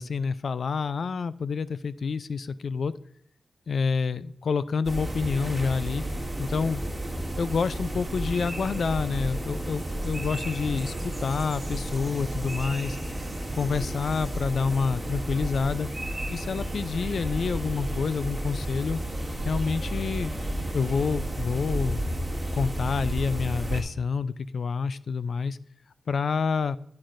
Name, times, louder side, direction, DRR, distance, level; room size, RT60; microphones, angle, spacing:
voice 1, 0.0-2.9 3.7-6.0 6.4-6.8 7.3-13.0 13.6-15.9 16.3-19.0 19.4-20.4 20.7-22.1 22.5-25.6 26.1-26.8, left 5 dB, 65° left, 16 dB, 0.3 m, -28 dB
sound 1, 4.8-23.8, right 1 dB, 10° right, 1.9 m, -32 dB
10.5 x 9.6 x 2.5 m, 0.70 s
wide cardioid pair, 165°, 0 cm